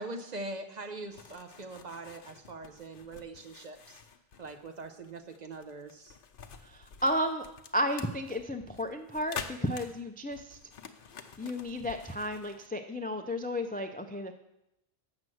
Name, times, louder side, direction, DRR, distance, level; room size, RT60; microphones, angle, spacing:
voice 1, 0.0-4.0 4.4-6.1, right 2 dB, 45° right, 6 dB, 0.9 m, -42 dB
sound 1, 1.1-12.7, left 6 dB, 65° left, 0.8 m, -48 dB
voice 2, 6.6-7.5 7.7-10.6 11.4-14.3, equal, 15° left, 7 dB, 0.3 m, -33 dB
7.4 x 6.2 x 7.7 m, 0.86 s
omnidirectional pair, 1.0 m